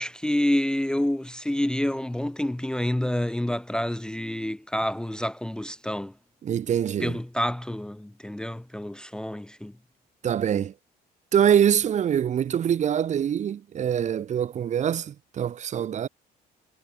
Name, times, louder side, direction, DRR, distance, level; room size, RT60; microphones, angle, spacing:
voice 1, 0.0-6.1 7.0-9.7, left 1 dB, 5° left, 0.7 m, -28 dB
voice 2, 6.4-7.2 10.2-10.7 11.3-16.1, right 9 dB, 45° right, 0.9 m, -24 dB
cardioid pair, 110°, 17 cm